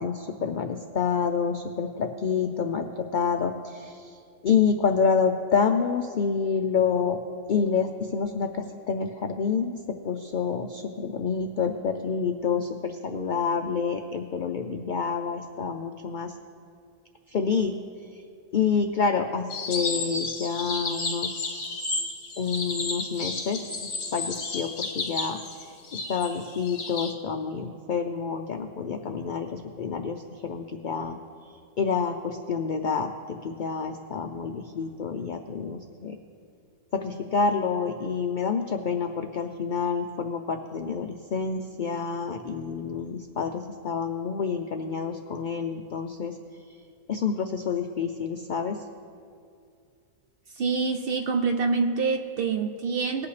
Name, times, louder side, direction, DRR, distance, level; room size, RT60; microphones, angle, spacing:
voice 1, 0.0-4.2 4.4-7.2 7.5-16.4 17.3-17.7 18.5-21.8 22.4-31.2 31.8-36.2 36.9-46.4 47.1-48.8, left 6 dB, 85° left, 5 dB, 0.4 m, -28 dB
sound 1, 19.5-27.1, left 3 dB, 60° left, 1.5 m, -32 dB
voice 2, 50.5-53.3, right 4 dB, 60° right, 5 dB, 0.6 m, -26 dB
19.0 x 8.4 x 3.2 m, 2.4 s
omnidirectional pair, 1.4 m